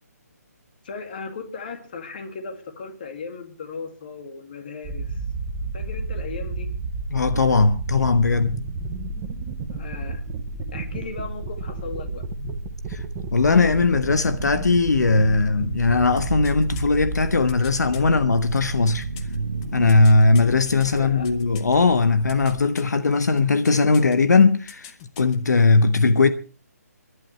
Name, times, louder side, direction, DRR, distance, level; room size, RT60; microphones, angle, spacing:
voice 1, 0.8-5.2 5.7-6.7 9.7-10.3 10.7-12.3 20.9-21.3, left 4 dB, 30° left, 2.3 m, -36 dB
sound 1, 4.8-22.6, right 3 dB, 15° right, 0.9 m, -32 dB
voice 2, 7.1-8.6 12.4-12.5 12.9-13.0 13.3-19.1 19.7-24.9 25.2-26.3, left 3 dB, 80° left, 1.2 m, -19 dB
sound 2, 12.9-20.1, right 4 dB, 70° right, 1.6 m, -36 dB
sound 3, 16.2-18.0 18.5-21.8 22.0-22.9 23.4-24.1 24.4-25.4 25.7-25.8, left 7 dB, 15° left, 0.8 m, -43 dB
29.0 x 11.5 x 3.2 m
hypercardioid pair, 175°, 9 cm